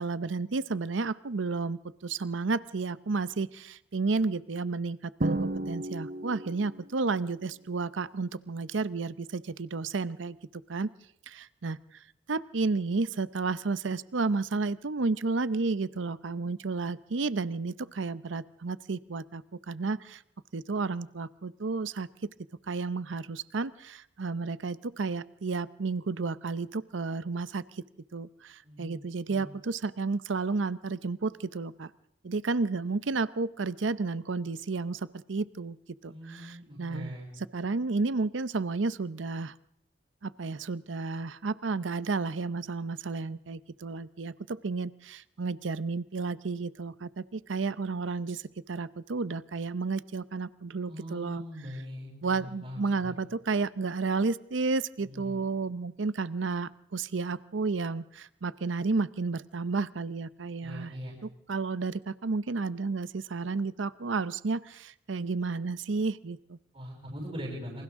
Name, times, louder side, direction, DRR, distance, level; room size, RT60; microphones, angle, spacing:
voice 1, 0.0-5.4 5.7-10.4 10.7-10.9 11.3-11.8 12.3-20.2 20.5-22.1 22.7-27.8 28.1-31.9 32.2-35.8 36.0-37.1 37.5-39.5 40.2-51.4 52.2-60.9 61.5-66.6, right 4 dB, 85° right, 16 dB, 0.7 m, -32 dB
Drum, 5.2-6.9, right 2 dB, 50° right, 0.9 m, -32 dB
voice 2, 28.6-29.5 36.1-37.3 50.9-53.2 55.0-55.4 60.6-61.1 66.7-67.8, equal, 35° right, -4 dB, 7.4 m, -41 dB
28.0 x 26.5 x 3.7 m, 0.80 s
head